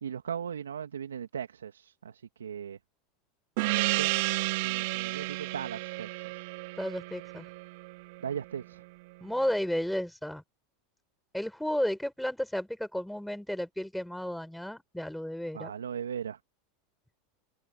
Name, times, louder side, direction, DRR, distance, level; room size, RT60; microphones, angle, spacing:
voice 1, 0.0-2.8 3.7-4.1 4.6-6.5 8.2-8.8 15.5-16.4, right 8 dB, 85° right, 2.9 m, -38 dB
Gong, 3.6-8.6, right 24 dB, 60° right, 0.6 m, -32 dB
voice 2, 6.8-7.5 9.2-10.4 11.3-15.7, left 1 dB, ahead, 7.0 m, -33 dB
hypercardioid pair, 90°, 0 cm